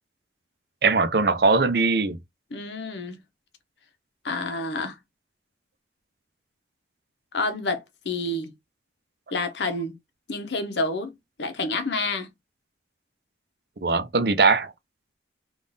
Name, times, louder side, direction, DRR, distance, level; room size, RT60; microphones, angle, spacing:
voice 1, 0.8-2.2 13.8-14.7, right 4 dB, 60° right, 0.5 m, -20 dB
voice 2, 2.5-3.2 4.2-5.0 7.3-8.5 9.3-9.9 10.3-11.1 11.4-12.3, left 2 dB, 75° left, 0.8 m, -28 dB
3.6 x 2.4 x 3.9 m
head